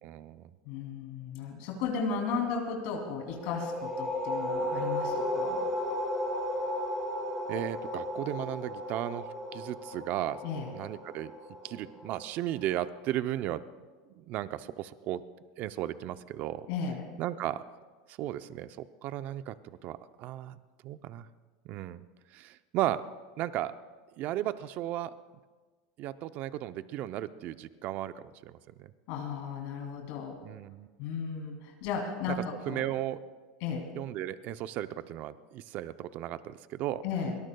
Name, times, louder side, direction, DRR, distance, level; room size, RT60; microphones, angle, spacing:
voice 1, 0.0-0.5 7.5-10.4 10.7-11.3 11.6-13.6 14.2-15.2 15.6-16.7 17.2-17.6 18.1-19.6 19.8-20.6 20.8-21.3 21.6-22.1 22.3-23.0 23.4-23.7 24.2-25.2 26.0-28.9 30.4-30.9 32.7-33.2 34.0-37.0, right 13 dB, 50° right, 13 dB, 0.6 m, -35 dB
voice 2, 0.7-5.6 10.4-10.7 16.7-17.1 29.1-30.4 31.0-32.9 33.6-33.8 37.0-37.4, left 5 dB, 65° left, 1 dB, 2.9 m, -35 dB
sound 1, 3.2-12.7, left 1 dB, 5° right, 4.9 m, -34 dB
23.0 x 18.5 x 2.3 m, 1.3 s
supercardioid pair, 115°, 4 cm